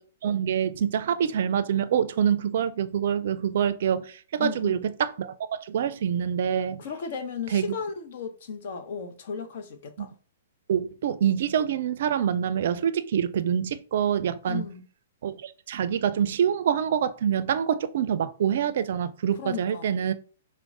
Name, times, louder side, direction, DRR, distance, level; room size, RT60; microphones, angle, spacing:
voice 1, 0.2-6.8 7.5-7.7 10.7-14.7 15.2-20.1, right 8 dB, 60° right, 0.3 m, -26 dB
voice 2, 4.4-4.9 6.8-10.1 14.5-14.9 19.3-20.1, left 6 dB, 60° left, 0.7 m, -35 dB
4.5 x 2.1 x 2.6 m
hypercardioid pair, 125°, 0 cm